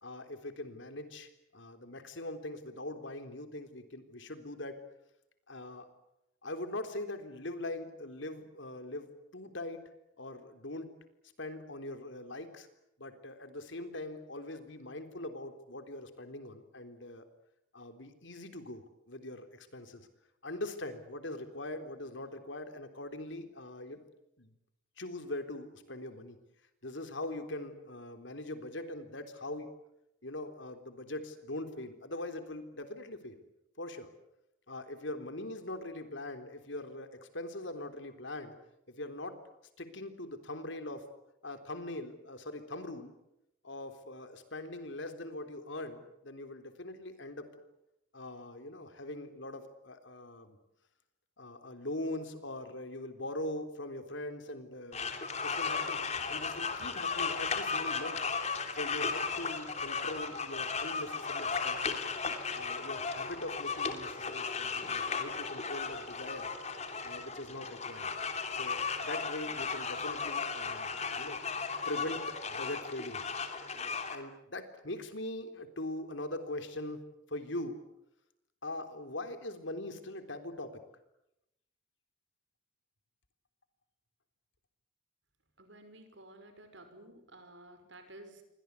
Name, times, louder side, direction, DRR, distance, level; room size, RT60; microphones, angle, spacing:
voice 1, 0.0-4.8 5.5-5.9 6.4-9.9 10.2-10.9 11.4-12.7 13.0-17.2 17.7-20.1 20.4-24.1 24.4-24.5 25.0-26.4 26.8-29.7 30.2-33.4 33.8-34.1 34.7-38.5 38.9-39.4 39.8-41.1 41.4-43.1 43.6-47.5 48.1-50.6 51.4-56.0 56.3-58.2 58.7-62.0 62.5-66.5 67.0-68.1 68.5-71.4 71.9-73.2 74.1-77.8 78.6-80.8, left 1 dB, 70° left, 8 dB, 3.7 m, -42 dB
sound 1, 54.9-74.1, left 5 dB, 35° left, 3.2 m, -35 dB
voice 2, 85.6-88.4, right 1 dB, 70° right, 9 dB, 5.8 m, -53 dB
29.0 x 24.5 x 8.4 m, 0.85 s
head